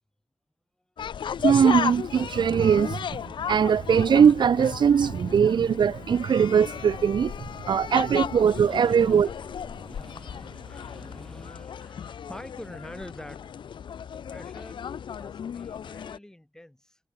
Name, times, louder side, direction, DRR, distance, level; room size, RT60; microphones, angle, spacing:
sound 1, 1.0-16.2, left 8 dB, 85° left, 0.7 m, -35 dB
voice 1, 1.4-3.2 3.5-7.3 7.7-9.3, right 7 dB, 70° right, 0.8 m, -21 dB
voice 2, 8.7-13.5 14.1-17.0, left 1 dB, 5° left, 6.8 m, -47 dB
wide cardioid pair, 170°, 8 cm